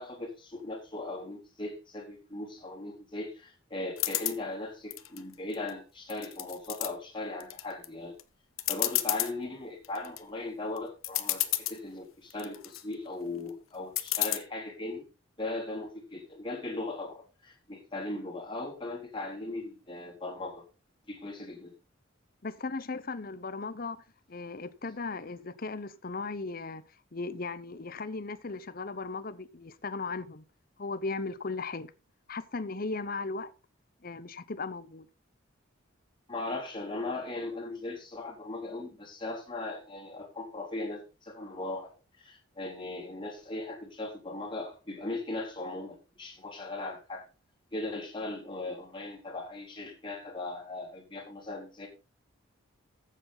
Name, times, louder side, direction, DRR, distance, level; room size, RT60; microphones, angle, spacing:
voice 1, 0.0-8.1 8.7-15.1 15.4-20.6 21.1-21.7 36.3-47.2 47.7-51.9, left 2 dB, 25° left, 3.7 m, -38 dB
sound 1, 4.0-4.4 4.9-5.7 6.1-6.9 7.4-7.9 8.2-8.3 8.6-9.3 9.8-10.2 10.8-10.9 11.0-11.8 12.3-12.8 14.0-14.4, left 15 dB, 90° left, 1.1 m, -30 dB
voice 2, 22.4-24.0 24.3-26.8 27.1-30.4 30.8-31.9 32.3-33.5 34.0-35.1, left 3 dB, 45° left, 0.8 m, -37 dB
14.0 x 7.6 x 4.0 m
head